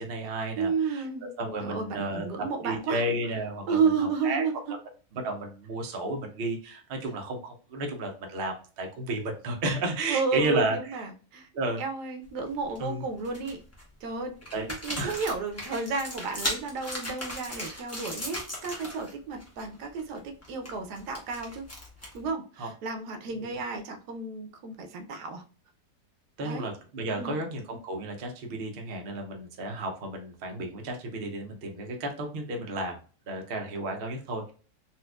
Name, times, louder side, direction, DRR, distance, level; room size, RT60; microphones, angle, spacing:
voice 1, 0.0-1.0 1.4-2.3 2.6-3.8 4.2-4.4 5.1-10.8 11.5-11.8 12.8-13.0 14.5-14.6 15.0-15.2 17.5-17.8 22.6-22.7 26.4-33.0 33.3-34.5, right 2 dB, 50° right, 2 dB, 0.7 m, -32 dB
voice 2, 0.6-1.3 1.6-3.0 3.7-4.7 10.1-11.5 11.8-13.6 14.0-21.6 22.1-25.4 26.4-26.7 27.2-27.4, right 4 dB, 80° right, 5 dB, 1.2 m, -32 dB
sound 1, 12.3-12.8 13.2-13.8 14.4-19.1 19.4-19.7 20.0-22.3, left 1 dB, 15° left, 0.6 m, -37 dB
4.2 x 2.4 x 2.2 m, 0.39 s
omnidirectional pair, 1.7 m